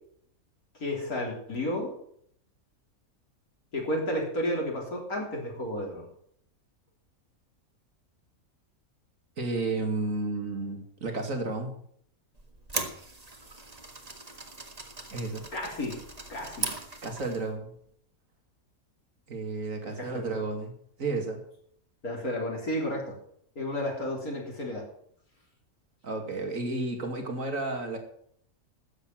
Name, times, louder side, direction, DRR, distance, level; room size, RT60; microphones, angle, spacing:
voice 1, 0.8-1.9 3.7-6.1 15.5-16.0 16.3-16.7 20.0-20.4 22.0-23.1 23.6-24.8, left 1 dB, 80° left, -1 dB, 4.1 m, -32 dB
voice 2, 9.4-11.8 15.1-15.4 17.0-17.7 19.3-21.4 26.0-28.0, right 3 dB, 65° right, 4 dB, 2.8 m, -32 dB
sound 1, 12.4-17.5, right 2 dB, 25° right, 1.6 m, -39 dB
13.0 x 8.5 x 7.6 m, 0.65 s
omnidirectional pair, 1.5 m